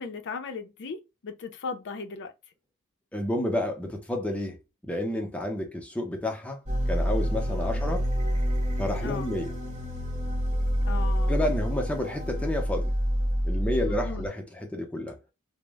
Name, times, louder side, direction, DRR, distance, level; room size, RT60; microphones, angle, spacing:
voice 1, 0.0-2.3 9.0-9.3 10.8-11.4 13.8-14.3, left 4 dB, 55° left, 0.5 m, -37 dB
voice 2, 3.1-4.6 4.8-6.6 6.9-8.1 8.8-9.5 11.3-12.9 13.4-15.2, left 1 dB, 5° left, 0.5 m, -30 dB
sound 1, 6.7-14.3, equal, 30° right, 0.8 m, -27 dB
2.1 x 2.0 x 3.3 m
head